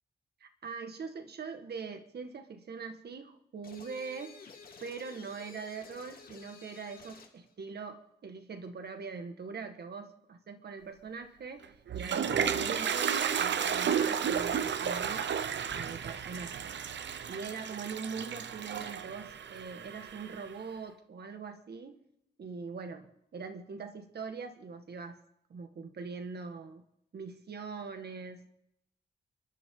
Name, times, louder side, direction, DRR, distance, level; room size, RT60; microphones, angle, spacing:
voice 1, 0.4-4.4 4.8-15.3 15.7-16.7 17.3-22.0 22.4-25.2 25.5-26.8 27.1-28.5, right 5 dB, 65° right, 7 dB, 1.8 m, -42 dB
sound 1, 3.6-7.4, left 4 dB, 55° left, 2.5 m, -52 dB
Toilet flush, 11.6-20.5, right 7 dB, 85° right, 1.0 m, -33 dB
28.5 x 12.0 x 3.9 m, 0.79 s
wide cardioid pair, 180°, 18 cm